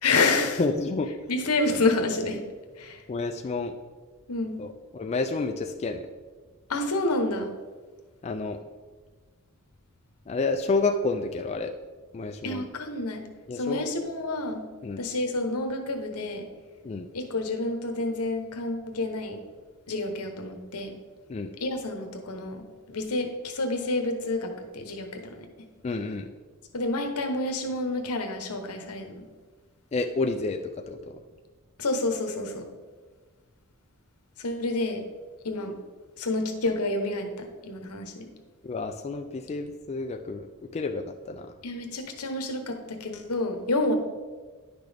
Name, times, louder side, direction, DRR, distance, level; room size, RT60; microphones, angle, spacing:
voice 1, 0.0-0.6 1.3-2.5 2.7-3.1 4.3-4.6 6.7-7.5 12.4-13.3 13.5-14.6 15.0-16.5 17.1-19.4 19.9-21.0 21.6-25.7 26.7-29.2 31.8-32.7 34.4-35.0 35.4-35.8 36.2-38.3 41.6-43.9, left 2 dB, 80° left, 5 dB, 1.0 m, -29 dB
voice 2, 0.6-1.1 3.1-3.7 4.6-6.1 8.2-8.6 10.3-11.7 12.1-12.7 13.5-13.9 14.8-15.0 16.8-17.1 21.3-21.5 25.8-26.3 29.9-31.2 38.6-41.5, left 3 dB, 30° left, 4 dB, 0.3 m, -30 dB
10.0 x 6.0 x 3.4 m, 1.4 s
head